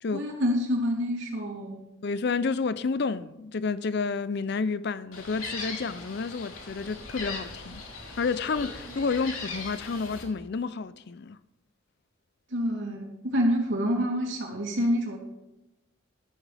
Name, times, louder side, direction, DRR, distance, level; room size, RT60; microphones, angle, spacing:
voice 1, 0.1-1.8 12.5-15.2, equal, 65° right, 3.0 m, -27 dB
voice 2, 2.0-7.8 8.2-11.4, left 4 dB, 55° left, 0.5 m, -30 dB
Gull seagull, 5.1-10.2, left 3 dB, 85° left, 3.4 m, -39 dB
13.5 x 13.5 x 3.4 m
head